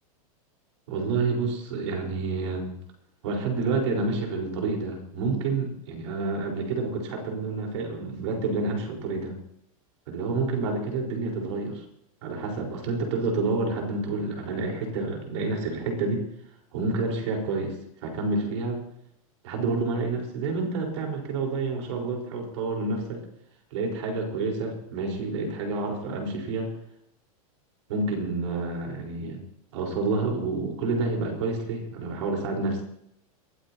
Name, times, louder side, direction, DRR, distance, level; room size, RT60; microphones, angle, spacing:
voice 1, 0.9-2.7 3.2-9.4 10.1-11.8 12.2-16.2 16.7-17.7 18.0-18.8 19.4-23.2 23.7-26.7 27.9-29.4 29.7-32.8, right 3 dB, 55° right, 1 dB, 4.5 m, -29 dB
23.0 x 14.0 x 2.9 m, 0.76 s
supercardioid pair, 180°, 18 cm